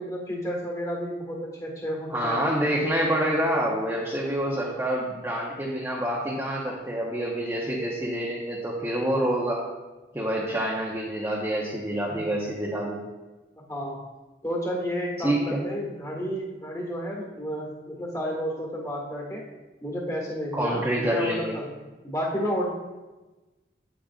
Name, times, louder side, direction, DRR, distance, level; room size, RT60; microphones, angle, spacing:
voice 1, 0.0-2.5 12.1-12.2 13.7-14.0 14.4-19.4 19.8-21.7 22.0-22.7, equal, 15° left, -2 dB, 1.6 m, -31 dB
voice 2, 2.1-9.6 10.1-13.0 15.2-15.7 20.5-21.6, right 1 dB, 15° right, -5 dB, 0.9 m, -27 dB
8.9 x 8.8 x 2.4 m, 1.2 s
head